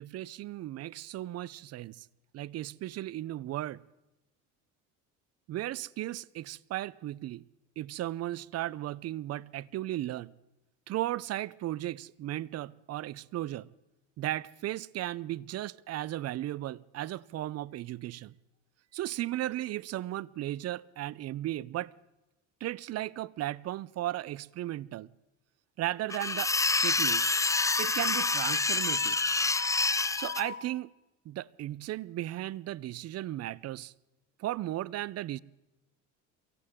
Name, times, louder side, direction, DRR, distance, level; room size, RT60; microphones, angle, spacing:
voice 1, 0.0-2.1 2.3-3.8 5.5-7.4 7.8-10.3 10.9-13.7 14.2-18.3 18.9-21.9 22.6-25.1 25.8-26.5 26.8-27.3 27.8-29.2 30.2-30.9 31.3-33.9 34.4-35.4, right 14 dB, 45° right, 0.5 m, -35 dB
sound 1, 26.1-30.4, left 3 dB, 10° left, 0.5 m, -27 dB
Alarm, 27.1-30.6, left 9 dB, 40° left, 4.4 m, -40 dB
23.5 x 16.5 x 3.7 m
supercardioid pair, 85°, 37 cm